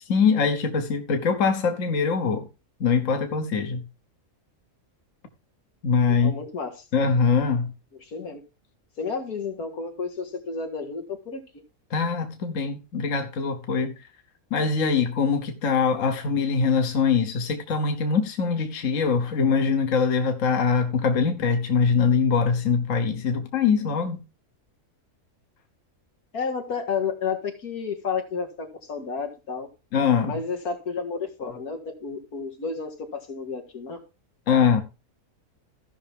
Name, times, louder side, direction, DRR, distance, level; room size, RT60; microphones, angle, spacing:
voice 1, 0.1-2.5 2.8-3.8 5.8-6.3 6.9-7.7 11.9-13.9 14.5-24.2 29.9-30.3 34.5-34.8, left 5 dB, 65° left, 1.5 m, -23 dB
voice 2, 6.1-6.8 8.0-8.4 9.0-11.4 26.3-29.7 30.2-34.0, left 5 dB, 90° left, 2.3 m, -31 dB
15.5 x 5.8 x 3.5 m
omnidirectional pair, 1.5 m